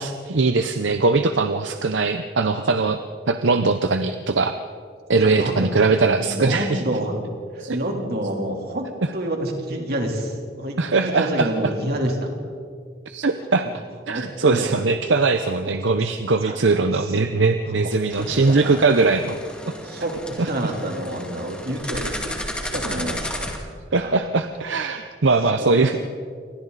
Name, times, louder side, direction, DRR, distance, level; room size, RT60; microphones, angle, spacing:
voice 1, 0.0-3.0 3.3-4.5 5.1-6.8 7.6-7.8 10.8-11.5 13.1-13.7 14.1-19.4 19.7-19.8 20.4-20.5 23.9-26.0, right 3 dB, 80° right, 8 dB, 0.8 m, -20 dB
voice 2, 2.5-2.9 5.2-5.7 6.2-7.2 7.5-12.3 13.6-13.7 14.1-14.7 16.0-16.1 16.4-17.1 17.8-17.9 18.2-18.8 19.8-23.6 24.0-24.2 25.5-26.0, right 1 dB, 55° right, 1 dB, 3.6 m, -28 dB
sound 1, 18.1-23.6, left 1 dB, 5° left, 2.5 m, -33 dB
28.5 x 24.5 x 4.2 m, 2.1 s
head